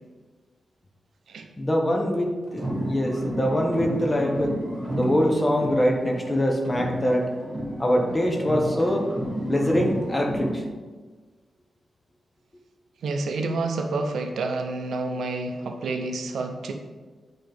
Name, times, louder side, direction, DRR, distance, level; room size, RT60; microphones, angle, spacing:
voice 1, 1.6-4.6 4.9-7.3 7.8-9.1 9.4-10.6, equal, 20° left, 2 dB, 0.8 m, -23 dB
sound 1, 2.5-6.4 6.6-10.6, equal, 25° right, 1.4 m, -32 dB
voice 2, 13.0-16.7, right 3 dB, 90° right, 4 dB, 0.6 m, -29 dB
8.0 x 3.8 x 3.4 m, 1.4 s
wide cardioid pair, 165°, 0 cm